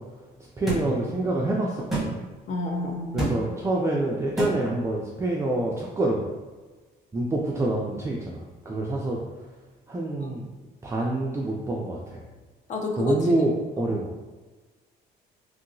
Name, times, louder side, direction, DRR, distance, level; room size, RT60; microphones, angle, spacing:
voice 1, 0.6-2.2 3.1-6.2 7.1-9.2 9.9-10.5 10.8-12.2 13.0-14.1, right 2 dB, 15° right, -3 dB, 0.3 m, -26 dB
sound 1, 0.7-0.8 1.9-2.1 3.2-3.4 4.4-4.5, right 1 dB, ahead, 0.9 m, -26 dB
voice 2, 2.5-3.3 10.2-10.3 12.7-13.3 13.8-13.9, left 2 dB, 45° left, 2 dB, 0.5 m, -30 dB
3.0 x 2.7 x 2.6 m, 1.3 s
cardioid pair, 110°, 17 cm